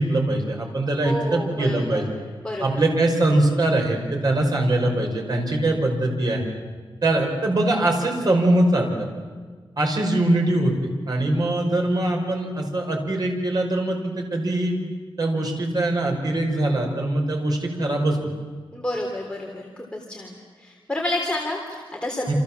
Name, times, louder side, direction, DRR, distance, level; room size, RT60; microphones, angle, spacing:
voice 1, 0.0-2.1 2.6-6.4 7.0-9.1 9.8-10.7 11.1-14.8 15.2-18.2 22.3-22.4, right 1 dB, 50° right, 2 dB, 5.5 m, -22 dB
voice 2, 1.0-2.7 18.7-22.3, left 1 dB, 10° left, -1 dB, 3.4 m, -30 dB
29.0 x 27.5 x 7.5 m, 1.5 s
wide cardioid pair, 150°, 9 cm